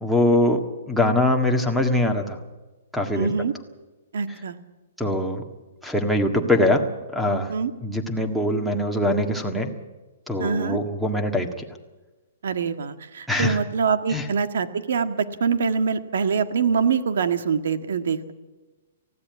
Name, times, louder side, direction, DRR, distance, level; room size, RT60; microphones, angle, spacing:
voice 1, 0.0-0.6 0.9-2.4 2.9-3.3 5.0-5.4 5.8-7.5 7.8-9.7 10.3-11.5 13.3-13.6 14.1-14.3, left 1 dB, ahead, 6 dB, 1.7 m, -22 dB
voice 2, 3.1-3.5 4.1-4.6 7.5-7.7 10.4-10.8 12.4-18.3, right 6 dB, 70° right, 10 dB, 1.7 m, -24 dB
19.5 x 15.5 x 9.5 m, 1.2 s
hypercardioid pair, 165°, 0 cm